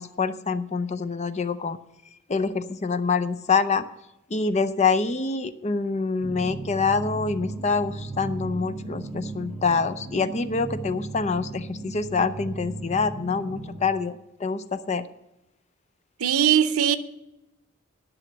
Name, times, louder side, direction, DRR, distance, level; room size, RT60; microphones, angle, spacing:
voice 1, 0.0-1.8 2.3-3.8 4.3-15.0, left 4 dB, 30° left, 0.5 m, -26 dB
sound 1, 6.2-13.8, right 2 dB, 5° right, 1.7 m, -36 dB
voice 2, 16.2-17.0, right 9 dB, 85° right, 0.7 m, -20 dB
11.0 x 6.3 x 7.8 m
head